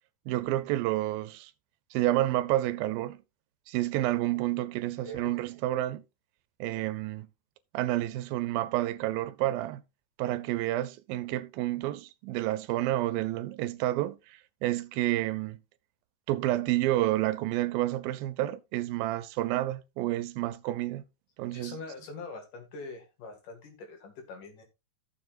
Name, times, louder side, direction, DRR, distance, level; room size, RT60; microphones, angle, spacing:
voice 1, 0.3-1.5 1.9-3.2 3.7-6.0 6.6-7.3 7.7-9.8 10.2-15.6 16.3-21.0 21.4-21.8, right 15 dB, 85° right, 2.5 m, -29 dB
voice 2, 21.5-24.6, left 3 dB, 65° left, 3.4 m, -43 dB
14.5 x 7.1 x 2.5 m
omnidirectional pair, 4.1 m